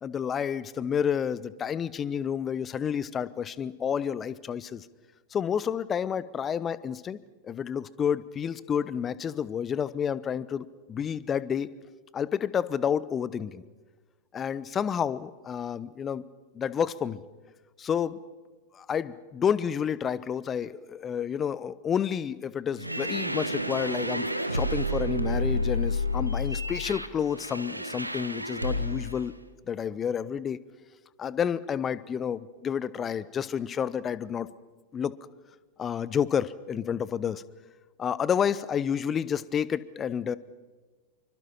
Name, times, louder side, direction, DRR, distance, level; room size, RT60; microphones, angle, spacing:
voice 1, 0.0-4.9 5.3-7.2 7.4-11.7 12.1-13.6 14.3-16.2 16.5-17.2 17.8-18.2 18.7-29.4 29.7-30.6 31.2-34.5 34.9-35.2 35.8-37.4 38.0-40.4, left 8 dB, 25° left, 18 dB, 0.9 m, -30 dB
sound 1, 22.8-29.2, left 1 dB, 85° right, 1.3 m, -30 dB
27.0 x 24.5 x 5.8 m, 1.3 s
figure-of-eight pair, 90°, 0 cm